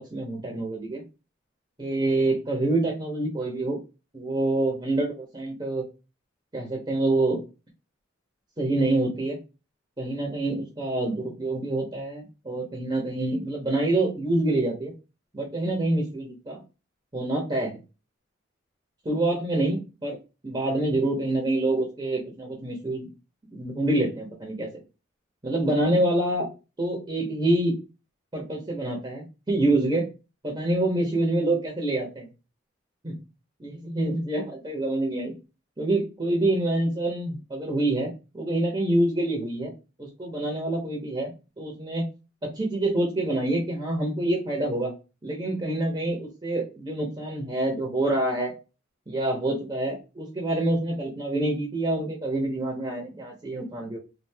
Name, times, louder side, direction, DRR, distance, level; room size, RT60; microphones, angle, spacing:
voice 1, 0.1-1.0 1.8-3.8 4.1-5.8 6.5-7.4 8.6-9.4 10.0-14.9 15.3-16.6 17.1-17.8 19.0-20.2 20.4-23.1 23.5-24.7 25.4-26.5 26.8-27.7 28.3-30.1 30.4-32.3 33.0-33.2 33.6-35.3 35.8-39.7 40.0-42.1 42.4-44.9 45.2-48.5 49.1-54.0, right 2 dB, 20° right, -1 dB, 0.9 m, -26 dB
3.4 x 2.5 x 2.7 m, 0.29 s
head